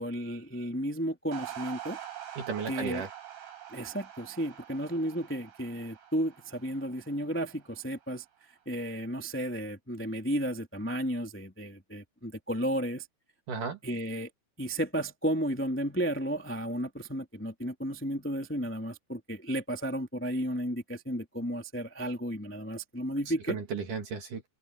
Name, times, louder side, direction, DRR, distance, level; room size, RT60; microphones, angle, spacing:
voice 1, 0.0-2.0 2.7-3.1 3.7-8.2 8.6-13.1 13.8-14.3 14.6-23.5, equal, 5° left, 1.1 m, -33 dB
sound 1, 1.3-7.8, right 11 dB, 75° right, 8.4 m, -45 dB
voice 2, 2.4-3.1 13.5-13.8 23.3-24.5, right 5 dB, 50° right, 3.3 m, -35 dB
omnidirectional pair, 5.7 m